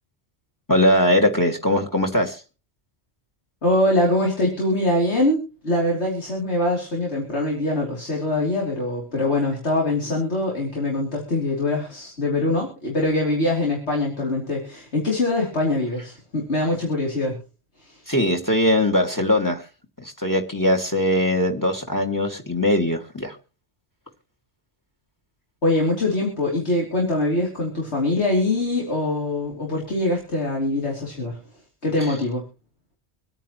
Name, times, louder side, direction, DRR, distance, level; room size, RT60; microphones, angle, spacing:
voice 1, 0.7-2.4 18.1-19.6 20.0-23.4, left 1 dB, 15° left, 1.8 m, -21 dB
voice 2, 3.6-17.4 17.8-18.0 25.6-31.4 31.8-32.4, left 1 dB, 80° left, 3.2 m, -23 dB
25.5 x 9.1 x 2.9 m
omnidirectional pair, 1.1 m